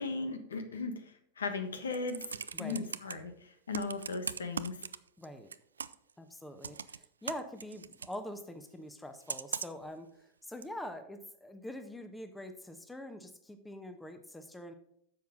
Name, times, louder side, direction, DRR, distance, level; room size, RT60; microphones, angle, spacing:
voice 1, 0.0-4.8, left 4 dB, 70° left, 8 dB, 1.3 m, -37 dB
Computer keyboard, 1.7-3.1 3.7-5.3 5.5-6.1 6.6-8.2 9.3-9.9 10.6-10.7, right 6 dB, 70° right, 0.4 m, -39 dB
voice 2, 2.5-2.9 5.2-5.5 6.2-14.7, left 1 dB, 5° left, 8 dB, 1.1 m, -45 dB
10.5 x 7.3 x 3.7 m, 0.71 s
figure-of-eight pair, 90°, 0 cm